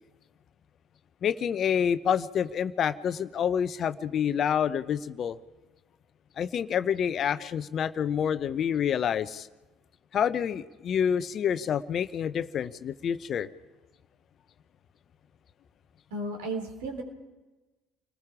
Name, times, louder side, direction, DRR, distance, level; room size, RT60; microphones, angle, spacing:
voice 1, 1.2-5.4 6.4-9.5 10.1-13.5, left 8 dB, 45° left, 14 dB, 0.8 m, -28 dB
voice 2, 16.1-17.0, right 2 dB, 70° right, 4 dB, 3.8 m, -34 dB
29.0 x 20.0 x 4.9 m, 1.2 s
figure-of-eight pair, 60°, 0 cm